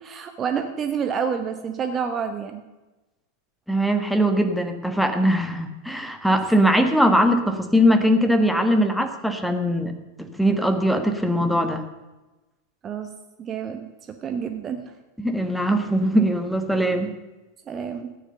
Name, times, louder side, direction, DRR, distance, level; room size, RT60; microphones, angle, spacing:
voice 1, 0.0-2.6 12.8-13.1 13.4-15.0 17.7-18.1, right 7 dB, 25° right, 7 dB, 1.0 m, -29 dB
voice 2, 3.7-9.9 10.2-11.8 15.2-17.1, equal, ahead, 7 dB, 1.4 m, -21 dB
14.0 x 9.8 x 6.7 m, 1.1 s
figure-of-eight pair, 90°, 0 cm